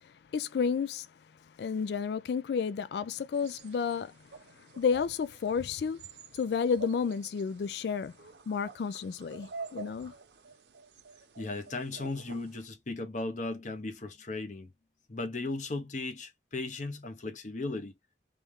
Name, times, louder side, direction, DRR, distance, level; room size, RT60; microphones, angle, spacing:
voice 1, 0.3-1.1 1.6-4.1 4.8-6.0 6.3-8.1 8.5-10.1, left 6 dB, 65° left, 0.3 m, -31 dB
sound 1, 3.3-12.7, right 4 dB, 75° right, 0.8 m, -49 dB
voice 2, 11.4-14.7 15.1-17.9, left 2 dB, 45° left, 0.8 m, -36 dB
3.4 x 3.1 x 3.5 m
head